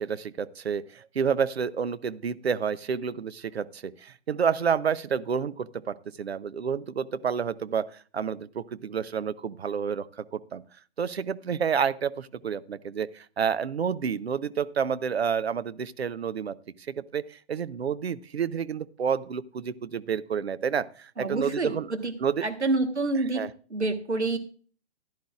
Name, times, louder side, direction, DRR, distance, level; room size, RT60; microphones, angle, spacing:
voice 1, 0.0-10.6 11.0-16.6 16.9-21.9 22.2-22.4 23.3-23.5, right 7 dB, 65° right, 15 dB, 0.7 m, -29 dB
voice 2, 21.2-22.1 22.4-23.4 23.7-24.4, right 2 dB, 85° right, 6 dB, 1.5 m, -27 dB
15.0 x 11.5 x 2.4 m, 0.40 s
figure-of-eight pair, 125°, 33 cm